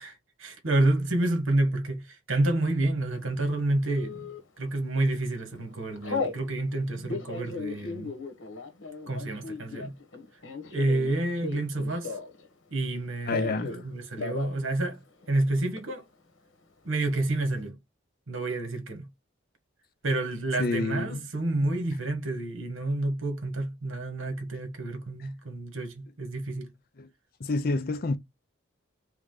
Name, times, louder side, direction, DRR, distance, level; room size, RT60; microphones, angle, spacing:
voice 1, 0.0-4.3 4.6-8.1 9.1-9.9 10.7-12.2 12.7-15.0 15.3-16.0 16.8-17.8 18.3-19.0 20.0-26.7, right 2 dB, 85° right, 1.4 m, -29 dB
Telephone, 3.9-4.4 5.0-5.2 5.5-6.4 6.9-12.5 12.7-13.8 14.1-14.6 14.9-15.0 15.2-15.8, left 4 dB, 65° left, 1.2 m, -36 dB
voice 2, 13.3-13.8 20.6-21.3 27.0-27.1 27.4-28.2, left 3 dB, 50° left, 0.6 m, -29 dB
3.7 x 3.1 x 3.7 m
head